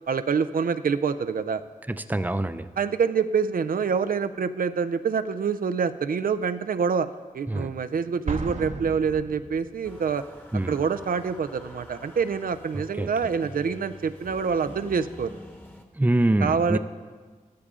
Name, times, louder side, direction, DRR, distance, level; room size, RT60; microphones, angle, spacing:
voice 1, 0.1-1.6 2.8-7.1 7.3-10.2 10.7-15.4 16.4-16.8, right 6 dB, 85° right, 12 dB, 0.4 m, -26 dB
voice 2, 1.9-2.7 7.5-7.7 10.5-10.8 13.0-13.1 16.0-16.8, right 1 dB, 10° right, 11 dB, 0.5 m, -24 dB
Explosion, 8.3-10.0, right 3 dB, 55° right, 0.8 m, -34 dB
sound 1, 9.8-15.8, equal, 15° left, 1.1 m, -46 dB
13.5 x 11.0 x 3.7 m, 1.4 s
wide cardioid pair, 70°, 14 cm